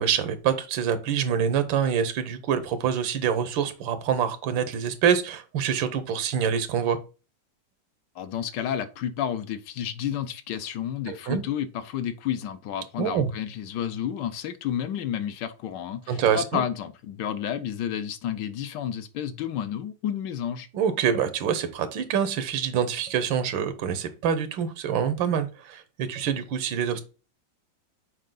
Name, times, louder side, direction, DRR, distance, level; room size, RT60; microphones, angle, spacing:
voice 1, 0.0-7.0 11.1-11.4 13.0-13.3 16.1-16.6 20.7-27.0, right 8 dB, 90° right, 1.6 m, -26 dB
voice 2, 8.1-20.7, left 9 dB, 75° left, 1.2 m, -31 dB
6.5 x 4.6 x 3.8 m
omnidirectional pair, 2.1 m